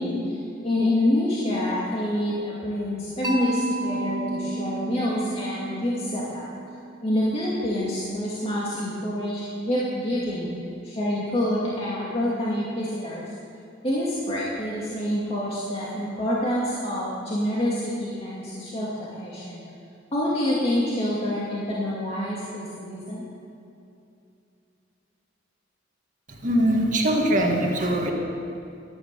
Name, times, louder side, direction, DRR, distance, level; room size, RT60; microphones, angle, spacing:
voice 1, 0.0-6.5 7.0-10.5 10.8-13.2 13.8-19.6 20.1-23.2, left 1 dB, 30° left, -7 dB, 2.3 m, -27 dB
Mallet percussion, 3.2-7.3, right 1 dB, 20° right, 1.4 m, -31 dB
voice 2, 26.3-28.1, right 1 dB, 45° right, 1 dB, 1.7 m, -22 dB
15.5 x 11.0 x 6.9 m, 2.6 s
head